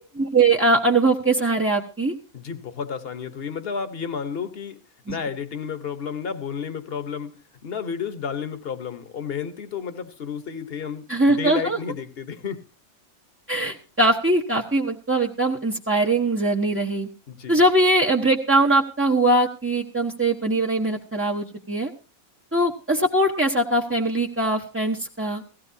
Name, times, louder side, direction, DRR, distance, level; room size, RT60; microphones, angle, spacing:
voice 1, 0.2-2.1 5.1-5.2 11.1-11.8 13.5-17.1 17.5-21.9 22.5-25.4, right 2 dB, 15° right, -1 dB, 0.6 m, -21 dB
voice 2, 2.3-4.8 5.1-7.3 7.6-12.6 17.3-17.6, left 6 dB, 45° left, 11 dB, 1.2 m, -31 dB
17.0 x 15.0 x 2.7 m, 0.32 s
omnidirectional pair, 1.5 m